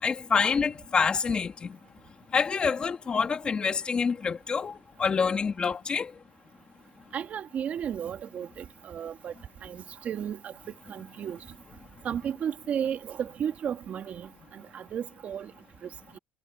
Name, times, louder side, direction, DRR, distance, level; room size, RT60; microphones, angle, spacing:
voice 1, 0.0-1.7 2.3-4.7 5.0-6.1, left 5 dB, 20° left, 3.2 m, -27 dB
voice 2, 7.1-9.3 9.6-10.5 10.9-11.4 12.0-15.5, right 8 dB, 35° right, 2.7 m, -34 dB
cardioid pair, 140°, 4 cm